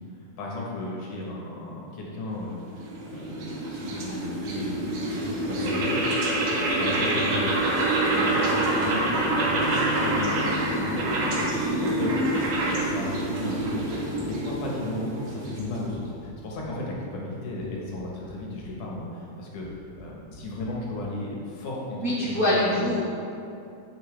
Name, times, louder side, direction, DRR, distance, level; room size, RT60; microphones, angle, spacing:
voice 1, 0.4-2.6 3.0-6.1 6.4-7.5 8.1-14.0 14.3-19.7 20.0-22.9, left 2 dB, 80° left, -3 dB, 2.8 m, -35 dB
sound 1, 2.6-16.0, right 1 dB, 85° right, 3.0 m, -26 dB
sound 2, 7.6-7.7 8.1-8.2 8.6-8.7 9.1-9.2 9.6-9.7 10.1-10.2 10.6-10.7 11.1-11.2 11.6-11.7 12.1-12.2 12.6-12.7 13.1-13.2 13.6-14.6 15.6-16.7 17.6-17.7 18.0-18.3 18.6-18.7 19.6-19.7 20.0-20.1 20.3-20.4 20.6-20.8, left 5 dB, 60° left, 2.1 m, -47 dB
voice 2, 22.0-23.0, left 1 dB, 65° right, -8 dB, 0.8 m, -24 dB
8.7 x 7.7 x 3.4 m, 2.6 s
omnidirectional pair, 3.6 m